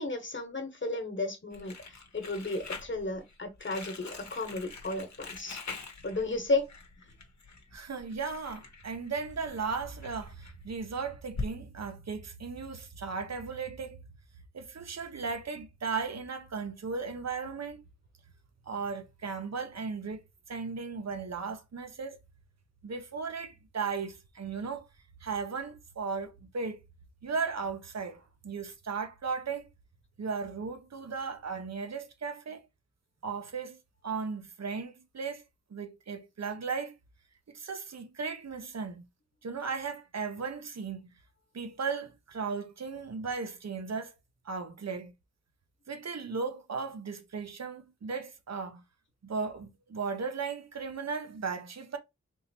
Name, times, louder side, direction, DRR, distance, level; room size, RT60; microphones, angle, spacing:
voice 1, 0.0-5.6 6.0-6.6, left 2 dB, 40° left, 1.2 m, -33 dB
Crumpling crinkling, 1.5-11.5, left 3 dB, 70° left, 0.9 m, -44 dB
voice 2, 7.7-14.0 14.5-17.8 18.7-20.2 20.5-22.2 22.8-24.9 25.2-26.8 27.2-29.7 30.2-32.6 33.2-33.8 34.0-35.4 35.7-36.9 37.5-39.0 39.4-41.1 41.5-44.1 44.4-45.1 45.9-48.8 49.2-52.0, right 5 dB, 65° right, 0.8 m, -36 dB
3.7 x 2.8 x 2.7 m
cardioid pair, 40°, 29 cm